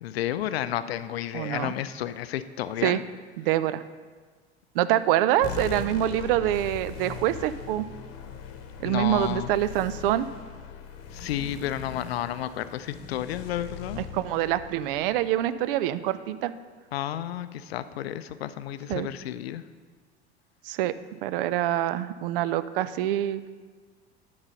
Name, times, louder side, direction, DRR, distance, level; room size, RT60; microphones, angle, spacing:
voice 1, 0.0-3.0 8.8-9.5 11.1-14.0 16.9-19.6, left 12 dB, 70° left, 13 dB, 0.5 m, -31 dB
voice 2, 1.3-1.7 2.8-3.0 3.4-3.8 4.7-7.9 8.8-10.3 14.0-16.5 18.9-19.1 20.7-20.9 21.2-23.5, right 13 dB, 55° right, 14 dB, 0.5 m, -25 dB
sound 1, 5.4-16.3, left 6 dB, 50° left, 1.0 m, -40 dB
11.0 x 3.9 x 6.5 m, 1.5 s
figure-of-eight pair, 70°, 32 cm